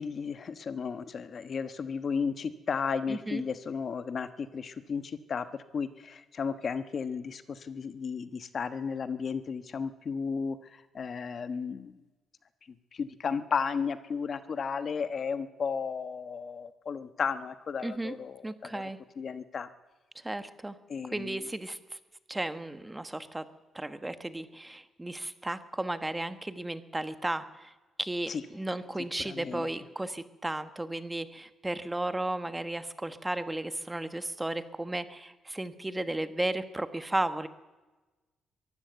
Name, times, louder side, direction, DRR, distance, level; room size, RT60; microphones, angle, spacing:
voice 1, 0.0-5.4 5.7-11.9 12.9-18.8 19.2-19.7 20.9-21.4 28.3-28.4 29.2-29.7, left 6 dB, 50° left, 11 dB, 1.2 m, -34 dB
voice 2, 3.1-3.4 17.8-18.1 18.4-19.0 20.1-20.7 21.1-22.0 22.3-23.4 23.7-27.7 28.0-37.5, right 1 dB, 10° right, 11 dB, 1.3 m, -34 dB
22.5 x 14.5 x 8.1 m, 1.1 s
cardioid pair, 90°, 0 cm